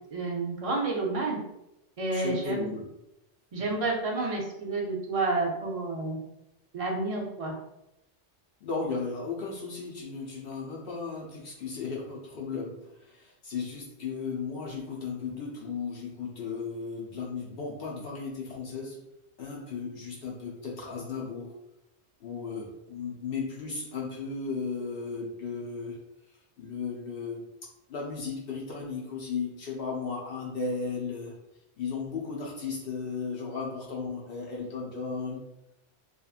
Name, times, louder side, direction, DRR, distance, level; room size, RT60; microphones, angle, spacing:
voice 1, 0.1-1.4 2.0-2.7 3.5-6.2 6.7-7.5, right 3 dB, 55° right, -1 dB, 0.3 m, -30 dB
voice 2, 2.1-2.9 8.6-19.0 19.4-21.5 22.2-26.0 26.6-27.5 27.9-31.4 31.8-35.4, left 4 dB, 60° left, -2 dB, 0.7 m, -35 dB
2.7 x 2.4 x 2.3 m, 0.87 s
omnidirectional pair, 1.2 m